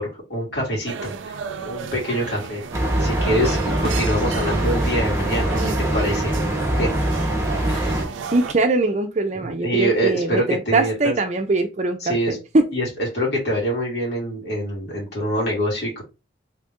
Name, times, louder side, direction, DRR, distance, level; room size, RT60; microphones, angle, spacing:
voice 1, 0.0-1.4 1.6-2.7 3.0-6.3 6.7-6.9 7.7-8.1 9.4-11.1 12.0-12.4 12.7-12.9 13.1-16.0, equal, 60° left, -4 dB, 2.4 m, -25 dB
sound 1, 0.9-8.5, right 5 dB, 90° right, 0.4 m, -33 dB
sound 2, 2.7-8.0, right 1 dB, 15° right, 1.0 m, -23 dB
voice 2, 8.3-12.7, right 2 dB, 35° right, 6 dB, 0.6 m, -22 dB
3.6 x 2.7 x 3.5 m, 0.27 s
head